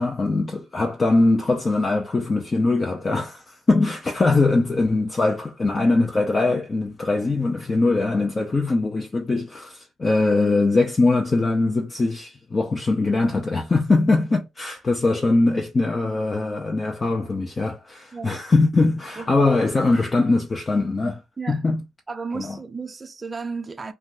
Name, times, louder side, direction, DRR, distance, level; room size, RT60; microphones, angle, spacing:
voice 1, 0.0-21.2 21.5-21.8 22.3-22.6, left 3 dB, 30° left, 0.5 m, -21 dB
voice 2, 22.1-23.9, right 4 dB, 30° right, 0.4 m, -33 dB
2.6 x 2.2 x 3.2 m
cardioid pair, 90°, 0 cm